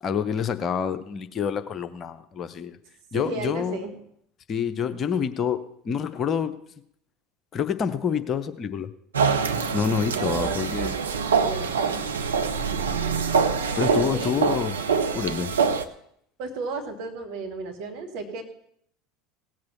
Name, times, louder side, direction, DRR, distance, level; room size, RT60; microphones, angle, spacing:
voice 1, 0.0-2.8 3.1-3.8 4.5-6.5 7.5-8.9 9.7-11.0 13.8-14.7 15.1-15.6, left 7 dB, 35° left, 11 dB, 0.8 m, -27 dB
voice 2, 3.1-4.0 10.1-10.6 11.1-12.0 13.9-14.4 16.4-18.4, right 4 dB, 55° right, 6 dB, 2.1 m, -34 dB
sound 1, 9.1-15.8, right 5 dB, 75° right, 0.8 m, -25 dB
17.0 x 7.8 x 7.1 m, 0.70 s
figure-of-eight pair, 70°, 0 cm